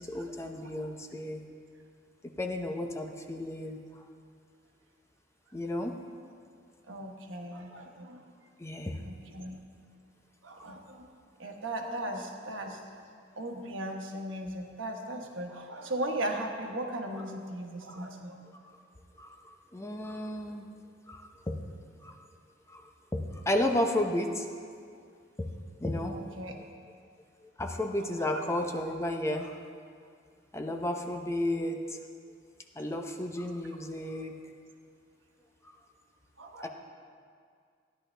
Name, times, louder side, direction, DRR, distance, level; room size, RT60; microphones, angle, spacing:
voice 1, 0.0-1.4 2.2-4.0 5.5-6.0 8.6-9.0 10.6-10.7 17.9-18.1 18.6-18.8 19.2-20.7 21.1-21.6 22.0-22.2 22.7-24.5 25.4-26.2 27.6-29.5 30.5-32.0 32.8-34.4 35.6-35.8 36.6-36.7, left 1 dB, 15° left, 3 dB, 0.7 m, -33 dB
voice 2, 6.9-8.2 9.1-9.6 10.4-11.1 11.4-12.8 13.4-18.4 26.1-26.5 28.2-28.3 36.4-36.7, right 1 dB, 90° right, 2 dB, 1.2 m, -37 dB
14.5 x 10.5 x 3.3 m, 2.2 s
head